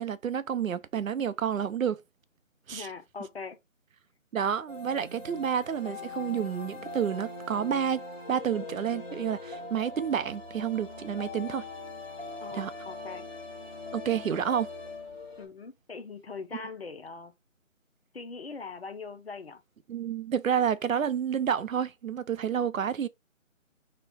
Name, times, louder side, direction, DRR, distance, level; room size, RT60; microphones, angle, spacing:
voice 1, 0.0-2.0 2.7-2.9 4.3-8.0 8.3-11.6 12.5-12.7 13.9-14.7 16.5-16.6 19.9-23.1, right 8 dB, 90° right, 0.6 m, -29 dB
voice 2, 2.7-3.6 12.4-13.2 15.4-17.3 18.1-19.6, left 4 dB, 50° left, 0.7 m, -41 dB
sound 1, 4.7-15.5, left 3 dB, 5° left, 1.2 m, -41 dB
4.3 x 2.2 x 4.0 m
figure-of-eight pair, 170°, 39 cm